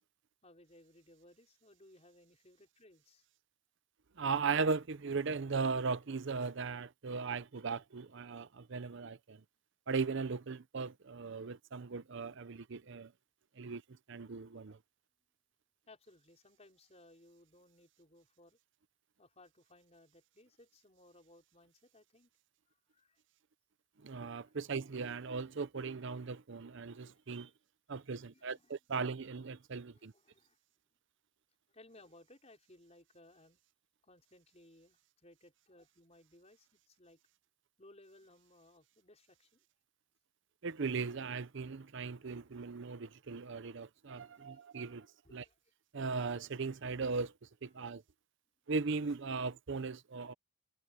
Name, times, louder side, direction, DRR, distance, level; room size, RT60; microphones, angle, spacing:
voice 1, 0.4-3.3 15.9-18.6 19.2-22.3 22.7-23.2 27.4-27.5 28.1-28.8 29.8-30.6 31.7-33.6 34.0-37.2 37.8-39.6 44.2-44.5 45.2-45.6 47.7-48.0, left 1 dB, 30° left, 5.3 m, -62 dB
voice 2, 4.2-9.4 9.9-13.1 13.6-13.8 14.1-14.8 24.0-27.5 27.9-30.1 40.6-45.1 45.3-45.4 45.9-47.3 47.6-48.0 48.7-50.3, right 4 dB, 60° right, 0.7 m, -38 dB
head